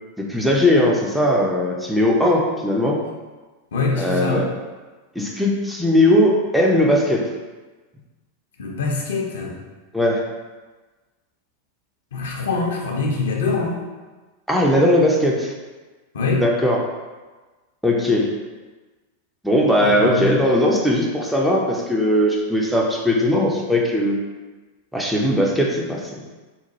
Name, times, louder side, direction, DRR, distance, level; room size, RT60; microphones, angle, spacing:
voice 1, 0.2-3.0 4.0-4.5 5.2-7.2 9.9-10.2 14.5-15.5 16.4-16.8 17.8-18.3 19.4-24.2 24.9-26.2, left 1 dB, ahead, -2 dB, 0.4 m, -19 dB
voice 2, 3.7-4.4 8.6-9.6 12.1-13.8 16.1-16.4 19.8-20.3, left 4 dB, 60° left, 0 dB, 0.5 m, -24 dB
2.9 x 2.0 x 2.8 m, 1.3 s
figure-of-eight pair, 90°, 0 cm